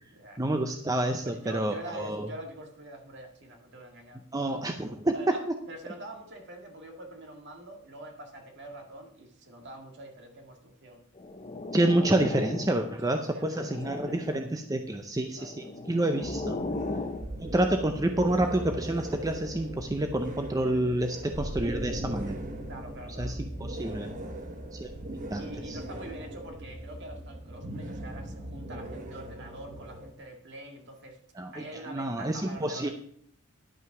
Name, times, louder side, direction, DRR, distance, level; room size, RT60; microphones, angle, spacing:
voice 1, 0.4-2.3 4.3-5.3 11.7-16.6 17.4-22.4 23.2-24.1 24.7-24.9 25.3-25.8 31.4-32.9, right 1 dB, 15° right, 5 dB, 0.6 m, -28 dB
voice 2, 1.2-4.2 5.1-11.0 12.8-14.4 15.4-15.7 22.7-23.4 25.4-31.2 31.5-32.9, right 1 dB, 55° right, 3 dB, 2.0 m, -45 dB
sound 1, 11.2-13.0 13.4-14.5 15.4-17.3, left 2 dB, 30° left, 0.6 m, -36 dB
sound 2, 16.2-30.1, right 1 dB, 40° right, 1.2 m, -39 dB
11.0 x 5.7 x 5.9 m, 0.66 s
head